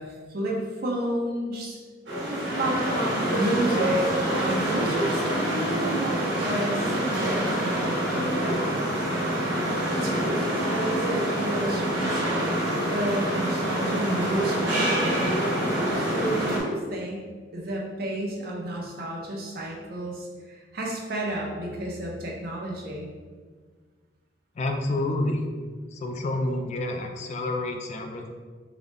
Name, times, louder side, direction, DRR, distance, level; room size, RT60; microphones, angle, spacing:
voice 1, 0.0-1.8 2.6-4.1 4.4-9.1 9.9-12.4 12.9-15.4 15.9-23.1, right 1 dB, 55° right, -2 dB, 0.7 m, -31 dB
sound 1, 2.1-16.6, right 1 dB, 70° right, 1.1 m, -26 dB
voice 2, 24.6-25.5 25.9-28.3, left 2 dB, 40° left, 4 dB, 0.3 m, -28 dB
3.8 x 2.1 x 3.2 m, 1.5 s
head